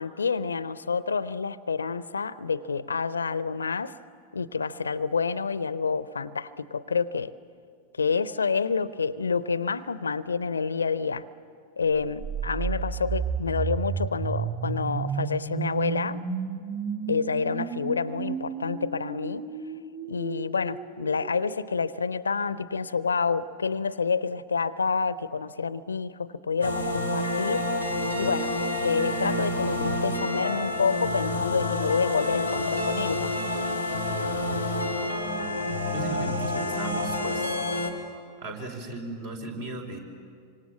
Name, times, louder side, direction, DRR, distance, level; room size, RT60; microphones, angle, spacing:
voice 1, 0.0-4.0 4.3-7.3 8.0-11.3 11.8-16.2 17.1-19.5 20.1-27.8 28.2-28.5 28.8-33.3, left 5 dB, 75° left, 18 dB, 0.6 m, -28 dB
sound 1, 12.0-21.9, right 6 dB, 30° right, 7.2 m, -33 dB
sound 2, 26.6-37.9, left 1 dB, 90° right, 2.6 m, -28 dB
voice 2, 35.9-37.6 38.4-40.0, right 3 dB, 55° right, 3 dB, 4.7 m, -36 dB
26.5 x 25.5 x 7.4 m, 2.3 s
figure-of-eight pair, 90°, 0 cm